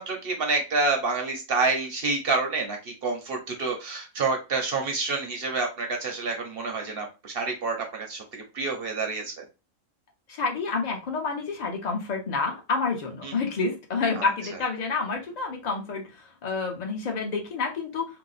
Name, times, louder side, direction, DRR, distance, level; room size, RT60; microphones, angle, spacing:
voice 1, 0.0-9.4 13.2-13.3 14.2-14.3, right 3 dB, 55° right, 2 dB, 0.8 m, -28 dB
voice 2, 10.3-16.1 16.4-18.0, left 4 dB, 35° left, 2 dB, 0.8 m, -28 dB
2.9 x 2.1 x 3.9 m, 0.28 s
omnidirectional pair, 1.4 m